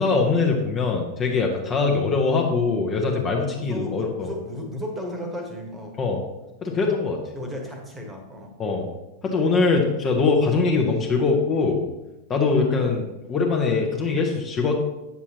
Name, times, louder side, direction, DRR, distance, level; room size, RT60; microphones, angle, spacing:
voice 1, 0.0-4.3 6.0-6.2 6.6-7.2 8.6-8.9 9.2-11.8 12.3-14.8, left 4 dB, 25° left, 1 dB, 1.0 m, -22 dB
voice 2, 3.5-6.0 7.3-8.5, equal, 15° right, 3 dB, 1.4 m, -34 dB
8.5 x 7.0 x 3.0 m, 0.95 s
figure-of-eight pair, 90°, 0 cm